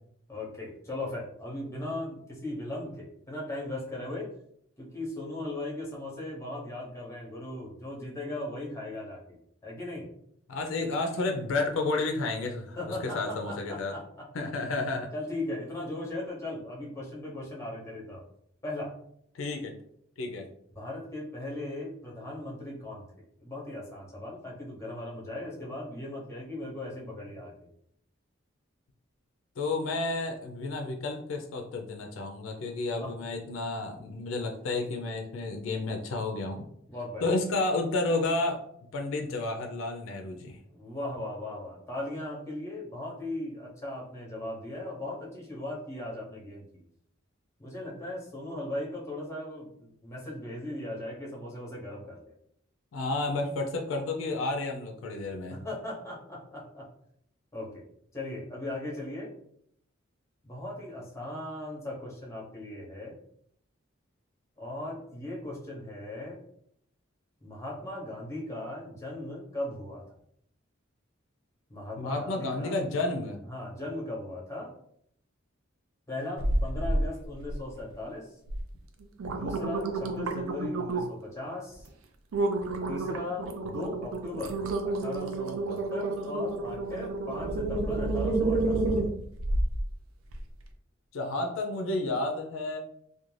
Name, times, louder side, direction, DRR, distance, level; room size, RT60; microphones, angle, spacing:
voice 1, 0.3-4.3 4.8-9.4 9.6-10.1 12.8-14.3 15.1-18.2 18.6-19.0 20.7-23.1 23.4-27.5 33.0-33.2 36.9-37.3 40.8-46.6 47.6-52.3 55.5-56.9 57.5-57.8 58.1-59.3 60.4-63.2 64.6-66.4 67.4-70.0 71.7-72.8 73.5-74.7 76.1-78.2 79.2-81.9 82.9-84.5 84.9-88.8, left 1 dB, 15° left, -3 dB, 0.7 m, -38 dB
voice 2, 10.5-13.9 14.3-15.1 19.3-19.7 20.2-20.5 29.6-36.6 37.2-38.6 38.9-40.6 52.9-55.6 72.0-73.4 91.1-92.8, left 2 dB, 70° left, 3 dB, 0.4 m, -31 dB
sound 1, 76.4-77.0 77.4-77.9 78.5-78.6 79.0-81.3 81.7-81.9 82.3-89.8 90.3-90.4, right 2 dB, 85° right, 0.4 m, -29 dB
2.5 x 2.2 x 3.1 m, 0.70 s
head